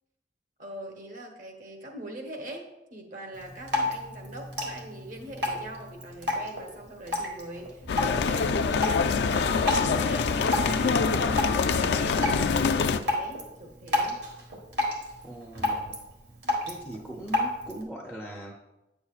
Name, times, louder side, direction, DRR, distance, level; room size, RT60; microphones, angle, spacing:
voice 1, 0.6-14.2, right 1 dB, 50° right, 3 dB, 1.1 m, -42 dB
Drip, 3.3-17.8, left 2 dB, 80° right, 1.5 m, -32 dB
sound 1, 7.9-13.0, left 5 dB, 70° left, 0.4 m, -25 dB
voice 2, 15.2-16.0 16.6-18.5, right 1 dB, 5° right, -2 dB, 0.5 m, -40 dB
9.1 x 6.9 x 2.4 m, 0.97 s
head